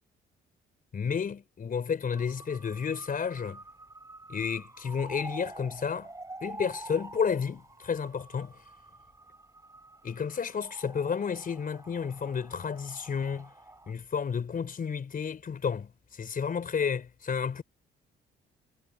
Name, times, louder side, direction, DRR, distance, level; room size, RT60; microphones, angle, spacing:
voice 1, 0.9-3.6 4.3-6.1 6.4-8.6 10.0-13.5 13.9-17.6, left 6 dB, 45° left, 4.7 m, -31 dB
sound 1, 2.0-13.9, right 2 dB, 15° right, 5.5 m, -47 dB
cardioid pair, 90°, 20 cm